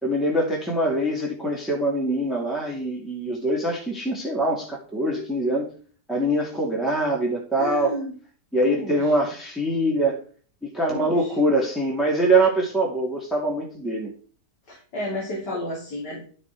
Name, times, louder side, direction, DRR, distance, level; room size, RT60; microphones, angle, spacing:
voice 1, 0.0-5.7 6.1-8.0 8.5-10.2 10.6-14.1, right 1 dB, ahead, -3 dB, 2.3 m, -23 dB
voice 2, 7.6-8.2 8.6-9.1 10.9-11.3 14.7-16.2, left 1 dB, 80° left, -4 dB, 4.1 m, -31 dB
13.0 x 6.0 x 4.7 m, 0.43 s
omnidirectional pair, 1.8 m